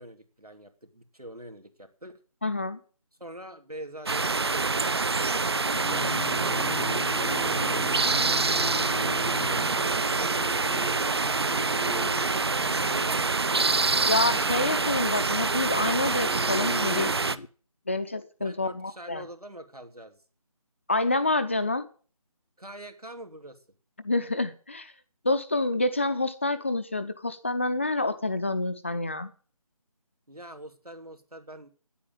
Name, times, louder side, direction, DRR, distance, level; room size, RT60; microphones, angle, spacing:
voice 1, 0.0-2.2 3.2-6.8 9.0-9.8 18.4-20.2 22.6-23.6 30.3-31.7, right 1 dB, 90° right, 6 dB, 2.9 m, -45 dB
voice 2, 2.4-2.8 14.1-17.3 17.9-19.2 20.9-21.9 24.0-24.9 25.2-29.3, left 2 dB, 20° left, 11 dB, 0.5 m, -28 dB
sound 1, 4.1-17.4, right 4 dB, 45° right, 0.6 m, -26 dB
sound 2, 5.7-17.5, left 3 dB, 65° left, 0.8 m, -39 dB
10.0 x 8.6 x 9.1 m, 0.40 s
figure-of-eight pair, 155°, 19 cm